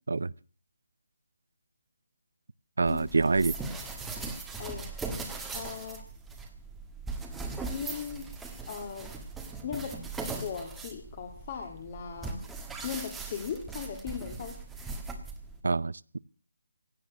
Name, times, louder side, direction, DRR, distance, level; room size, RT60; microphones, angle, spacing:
voice 1, 2.8-3.6 15.6-16.2, right 3 dB, 75° right, 0.7 m, -26 dB
sound 1, 2.9-15.6, right 3 dB, 5° right, 1.5 m, -39 dB
voice 2, 5.5-6.0 7.7-8.3 8.7-9.1 9.6-10.0 10.4-12.4 12.8-14.6, left 7 dB, 30° left, 1.9 m, -38 dB
16.5 x 9.3 x 8.3 m
hypercardioid pair, 170°, 0 cm